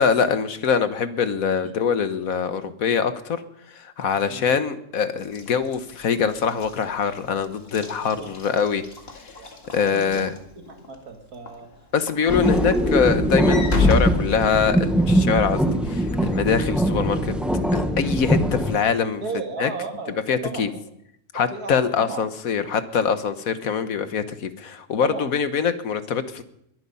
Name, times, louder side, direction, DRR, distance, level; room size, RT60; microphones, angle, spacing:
voice 1, 0.0-3.4 3.7-8.8 9.7-10.3 11.9-17.3 17.7-19.2 19.6-19.7 20.3-20.7 21.3-26.4, left 6 dB, 70° left, 11 dB, 1.5 m, -23 dB
Walk footsteps / Slam, 5.2-11.0 11.5-11.7 12.1-15.1, left 3 dB, 40° left, 2.2 m, -29 dB
voice 2, 9.4-10.2 10.6-11.7 12.2-12.5 19.2-20.1 20.4-20.7 21.5-22.2 25.0-25.4, right 4 dB, 85° right, 4 dB, 2.6 m, -34 dB
sound 1, 12.3-18.8, right 1 dB, ahead, 1.0 m, -22 dB
21.5 x 11.0 x 5.5 m, 0.76 s
omnidirectional pair, 1.6 m